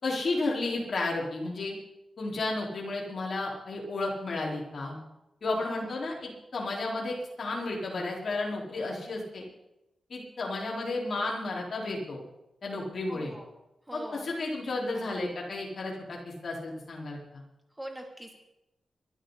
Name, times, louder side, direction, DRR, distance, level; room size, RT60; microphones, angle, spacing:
voice 1, 0.0-1.7 2.2-4.9 5.4-9.5 10.1-12.2 12.6-13.3 13.9-17.4, left 2 dB, 55° left, -3 dB, 4.8 m, -32 dB
voice 2, 13.1-13.5 13.9-14.3 17.8-18.3, right 1 dB, 10° right, 2 dB, 3.2 m, -42 dB
23.5 x 12.0 x 4.3 m, 0.91 s
wide cardioid pair, 120°, 0 cm